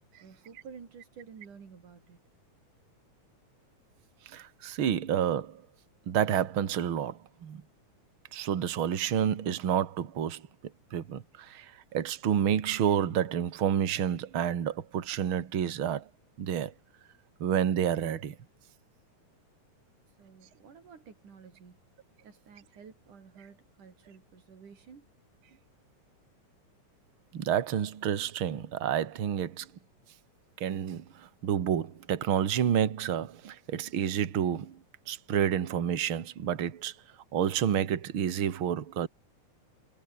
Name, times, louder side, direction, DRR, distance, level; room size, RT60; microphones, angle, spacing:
voice 1, 0.2-2.2 20.1-21.9 22.2-25.1, right 6 dB, 85° right, 5.2 m, -51 dB
voice 2, 4.3-5.6 6.1-7.6 8.3-10.5 10.9-16.1 16.4-16.7 17.4-18.4 27.3-29.7 30.6-34.8 35.1-36.9 37.3-39.1, right 9 dB, 45° right, 2.4 m, -29 dB
omnidirectional pair, 3.5 m